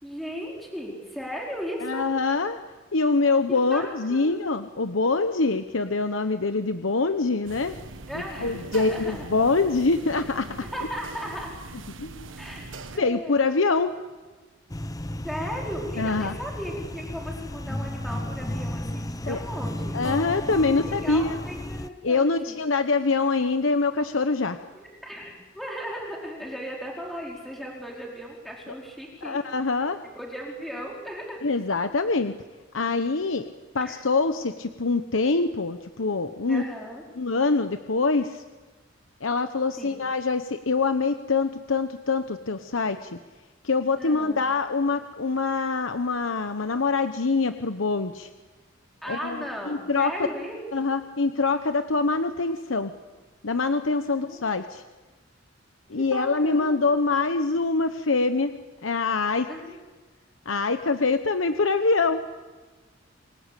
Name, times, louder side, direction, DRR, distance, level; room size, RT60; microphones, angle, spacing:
voice 1, 0.0-2.0 3.5-4.6 8.1-9.3 10.7-11.7 12.4-13.5 15.2-20.0 20.6-22.6 24.7-29.4 30.0-31.4 33.8-33.9 36.5-37.0 39.8-39.9 44.0-44.4 49.0-50.6 54.1-54.4 55.9-56.8 59.5-59.8, equal, ahead, -2 dB, 4.6 m, -36 dB
voice 2, 1.8-2.6 2.9-7.8 8.1-10.7 12.0-12.3 13.0-13.9 16.0-16.4 19.3-19.4 19.9-21.4 22.0-24.6 29.2-30.0 31.4-32.3 32.7-33.4 33.7-36.6 37.2-38.4 39.2-43.2 43.6-48.3 49.1-50.1 50.7-52.9 53.4-54.8 55.9-58.5 58.8-59.5 60.4-62.3, left 3 dB, 85° left, 9 dB, 1.0 m, -24 dB
sound 1, 7.5-13.0, right 2 dB, 75° right, 1.4 m, -41 dB
sound 2, 14.7-21.9, left 1 dB, 20° left, 0.7 m, -33 dB
28.0 x 22.5 x 8.4 m, 1.3 s
head